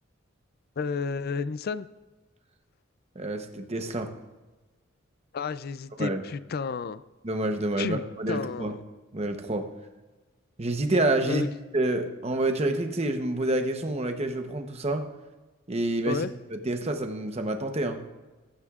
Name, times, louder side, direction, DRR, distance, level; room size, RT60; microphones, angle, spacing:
voice 1, 0.8-1.9 5.3-7.0 7.8-8.8 11.3-11.5 16.1-16.3, left 5 dB, 50° left, 15 dB, 0.4 m, -31 dB
voice 2, 3.1-4.1 6.0-6.2 7.2-8.7 9.1-9.7 10.6-11.4 11.7-15.1 15.7-16.3 16.5-18.0, right 2 dB, 30° right, 6 dB, 0.9 m, -28 dB
15.5 x 13.0 x 2.4 m, 1.2 s
head